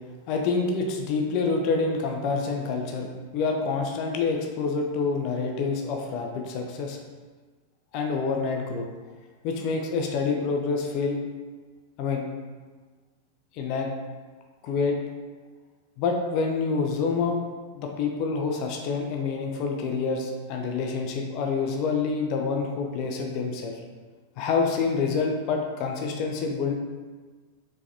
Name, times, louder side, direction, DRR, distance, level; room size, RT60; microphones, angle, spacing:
voice 1, 0.3-3.1 3.3-7.0 7.9-8.9 9.4-11.2 12.0-12.3 13.5-13.9 14.6-15.0 16.0-17.4 17.7-23.7 24.4-26.8, left 4 dB, 40° left, 2 dB, 0.5 m, -27 dB
4.6 x 3.3 x 2.7 m, 1.4 s
figure-of-eight pair, 90°, 0 cm